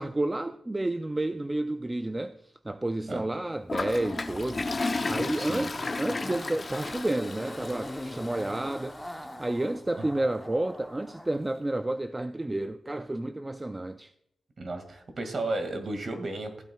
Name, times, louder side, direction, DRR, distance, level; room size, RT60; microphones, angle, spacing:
voice 1, 0.0-14.1, right 1 dB, 15° right, 0.4 m, -31 dB
Toilet flush, 3.7-8.7, left 3 dB, 35° left, 0.7 m, -33 dB
Zipper (clothing), 3.8-11.4 11.7-11.8, left 1 dB, ahead, 0.8 m, -42 dB
voice 2, 5.4-5.7 10.0-10.1 14.6-16.6, right 2 dB, 45° right, 2.0 m, -34 dB
15.0 x 8.8 x 2.3 m
wide cardioid pair, 110°, 0 cm